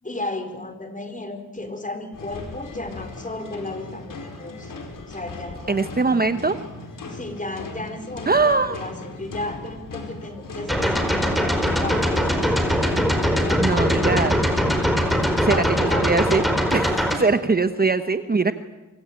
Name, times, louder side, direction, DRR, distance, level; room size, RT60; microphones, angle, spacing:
voice 1, 0.0-4.7 5.1-6.0 7.1-13.0 13.4-14.9 15.5-16.2, left 2 dB, 25° left, 7 dB, 4.9 m, -34 dB
sound 1, 2.1-16.7, left 2 dB, 80° left, 4.7 m, -37 dB
voice 2, 5.7-6.6 8.3-8.8 13.6-14.4 15.4-16.4 16.7-18.5, right 4 dB, 30° right, 10 dB, 1.2 m, -21 dB
sound 2, 10.7-17.2, equal, ahead, 4.7 m, -21 dB
25.0 x 24.0 x 9.0 m, 1.1 s
wide cardioid pair, 90°, 32 cm